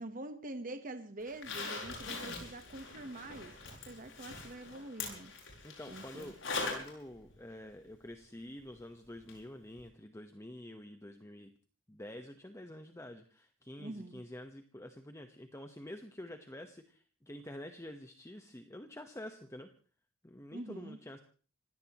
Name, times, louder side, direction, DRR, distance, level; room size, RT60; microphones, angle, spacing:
voice 1, 0.0-5.3 5.9-6.3 13.8-14.2 20.5-21.0, right 2 dB, 45° right, 7 dB, 1.2 m, -45 dB
Zipper (clothing), 1.3-6.9 7.3-7.4 9.3-9.4 9.8-9.9, left 3 dB, 85° left, 7.3 m, -42 dB
voice 2, 5.6-6.4 6.7-11.5 11.9-19.7 20.2-21.2, left 1 dB, 15° left, 6 dB, 1.1 m, -48 dB
26.5 x 17.5 x 3.1 m, 0.39 s
head